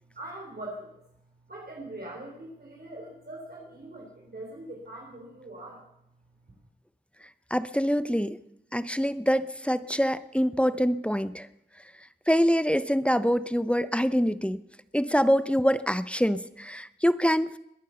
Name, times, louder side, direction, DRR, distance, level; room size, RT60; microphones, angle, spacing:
voice 1, 0.1-1.0 1.5-5.8, right 1 dB, 60° right, -2 dB, 3.6 m, -42 dB
voice 2, 7.5-8.4 8.7-11.5 12.3-14.6 14.9-17.6, equal, 5° left, 14 dB, 0.7 m, -25 dB
21.0 x 9.2 x 6.9 m, 0.79 s
wide cardioid pair, 45°, 18 cm